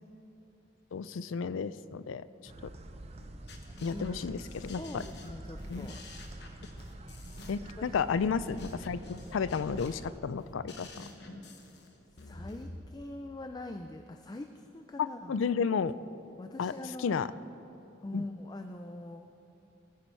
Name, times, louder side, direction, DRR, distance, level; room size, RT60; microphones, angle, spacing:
voice 1, 0.9-2.2 3.8-5.0 5.7-5.9 7.5-11.0 15.0-16.0 16.6-16.7 17.0-17.3 18.1-18.2, left 6 dB, 85° left, 16 dB, 0.4 m, -32 dB
sound 1, 2.5-10.2, right 1 dB, 35° right, 0.6 m, -46 dB
sound 2, 3.2-12.8, left 2 dB, 55° left, 1.1 m, -49 dB
voice 2, 3.7-6.0 7.8-8.2 12.1-15.4 16.4-17.2 18.0-19.3, left 2 dB, 20° left, 6 dB, 0.4 m, -43 dB
18.0 x 9.5 x 4.5 m, 2.9 s
head